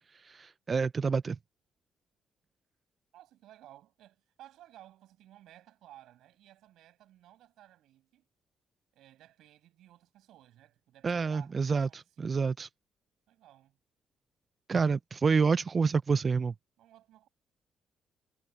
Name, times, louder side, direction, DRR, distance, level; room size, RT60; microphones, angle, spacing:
voice 1, 0.1-1.4 11.0-12.7 14.7-16.5, right 5 dB, 35° right, 0.3 m, -28 dB
voice 2, 3.1-8.3 8.9-12.4 13.3-13.8 16.8-17.3, right 13 dB, 85° right, 7.1 m, -57 dB
cardioid pair, 90°, 0 cm